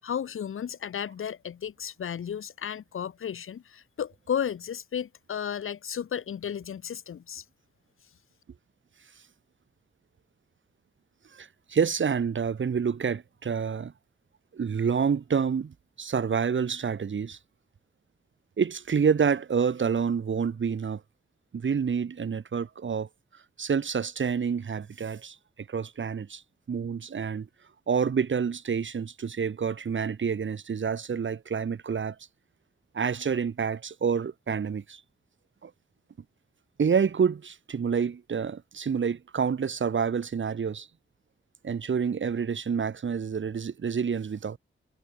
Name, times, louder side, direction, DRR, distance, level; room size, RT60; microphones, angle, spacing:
voice 1, 0.0-7.4, left 8 dB, 85° left, 0.8 m, -33 dB
voice 2, 11.3-13.9 14.5-17.4 18.6-21.0 21.5-23.1 23.6-25.4 25.7-26.4 26.7-27.5 27.9-32.2 32.9-35.0 35.6-35.7 36.8-40.9 41.6-44.6, right 6 dB, 65° right, 2.3 m, -28 dB
wide cardioid pair, 170°, 21 cm